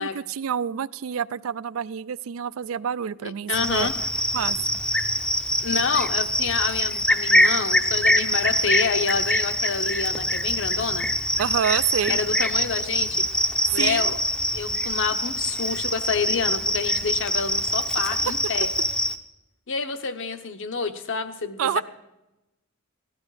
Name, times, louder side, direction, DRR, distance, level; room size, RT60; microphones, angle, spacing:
voice 1, 0.0-3.9 4.3-4.8 11.4-12.2 13.7-14.2 21.6-21.8, right 8 dB, 65° right, 18 dB, 0.4 m, -27 dB
voice 2, 3.5-3.9 5.6-11.1 12.1-13.2 13.7-14.2 14.5-18.7 19.7-21.8, left 5 dB, 60° left, 8 dB, 0.9 m, -28 dB
Cricket, 3.5-19.1, left 1 dB, 5° left, 0.6 m, -24 dB
16.0 x 11.5 x 4.9 m, 0.97 s
head